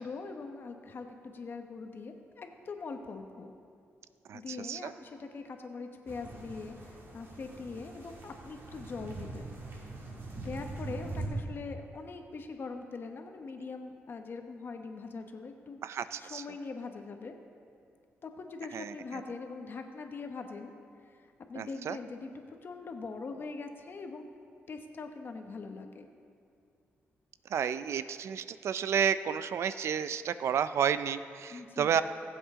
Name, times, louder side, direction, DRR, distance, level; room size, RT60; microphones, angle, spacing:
voice 1, 0.0-3.5 4.3-9.5 10.4-15.8 16.2-17.3 18.2-20.7 21.1-24.2 24.7-26.1 31.5-32.0, left 4 dB, 50° left, 5 dB, 1.0 m, -42 dB
voice 2, 4.3-4.9 15.8-16.4 18.7-19.2 21.6-22.0 27.5-32.0, right 8 dB, 70° right, 13 dB, 0.4 m, -31 dB
sound 1, 6.1-11.3, right 2 dB, 55° right, 2.3 m, -43 dB
20.0 x 7.9 x 3.7 m, 2.4 s
cardioid pair, 105°, 5 cm